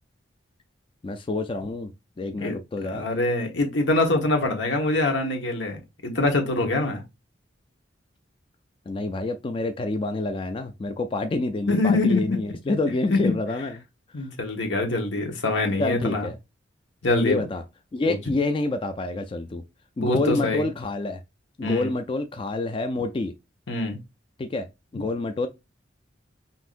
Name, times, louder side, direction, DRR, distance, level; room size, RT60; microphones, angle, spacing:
voice 1, 1.0-1.9 2.2-3.1 8.9-13.8 14.2-14.3 15.8-16.3 17.2-17.6 17.9-19.6 20.0-21.2 21.6-23.4 24.4-25.5, left 2 dB, 30° left, 0.3 m, -28 dB
voice 2, 2.9-7.0 11.7-12.4 13.1-13.3 14.1-16.3 17.0-17.4 18.1-18.2 20.0-20.6 21.6-21.9 23.7-24.0, left 2 dB, 80° left, 1.2 m, -24 dB
5.7 x 2.7 x 2.5 m
head